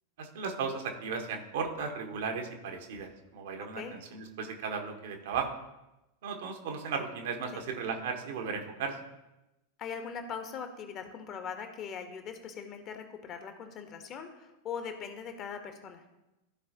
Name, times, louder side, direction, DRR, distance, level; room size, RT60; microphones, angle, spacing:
voice 1, 0.2-5.5 6.2-8.9, right 5 dB, 55° right, 4 dB, 1.2 m, -36 dB
voice 2, 3.6-4.0 7.5-7.6 9.8-16.0, left 6 dB, 35° left, 7 dB, 1.1 m, -41 dB
14.5 x 4.8 x 2.8 m, 0.97 s
figure-of-eight pair, 90°, 0 cm